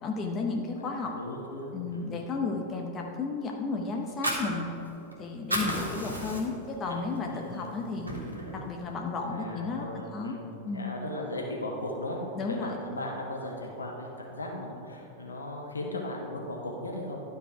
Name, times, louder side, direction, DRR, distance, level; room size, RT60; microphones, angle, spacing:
voice 1, 0.0-1.1 1.7-4.7 5.2-8.1 8.5-9.9 10.1-10.4 10.7-11.0 12.3-12.7, left 4 dB, 25° left, 1 dB, 0.8 m, -33 dB
voice 2, 0.9-2.1 7.2-7.7 9.2-12.2 12.5-17.2, left 1 dB, 75° left, -1 dB, 1.3 m, -37 dB
Fire, 4.0-5.1 5.4-6.7 7.1-7.3 7.7-8.7, equal, 80° right, 1.4 m, -32 dB
11.5 x 4.1 x 4.9 m, 2.9 s
figure-of-eight pair, 90°, 0 cm